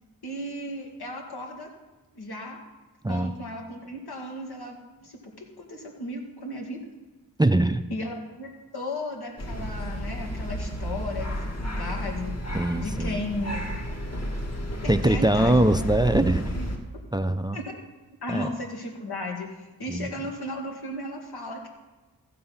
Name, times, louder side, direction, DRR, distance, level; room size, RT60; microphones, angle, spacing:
voice 1, 0.2-1.7 2.1-2.6 3.1-6.8 7.9-12.4 12.8-13.7 14.8-15.9 16.5-17.0 17.5-17.8 18.2-21.7, left 1 dB, 90° left, 0 dB, 2.1 m, -35 dB
voice 2, 7.4-7.8 12.5-13.2 14.9-16.6 17.1-17.6 18.3-18.5 19.9-20.1, right 1 dB, 10° right, 11 dB, 0.4 m, -22 dB
sound 1, 9.4-16.8, equal, 45° left, 1.6 m, -32 dB
14.5 x 6.8 x 5.6 m, 1.2 s
wide cardioid pair, 80°, 37 cm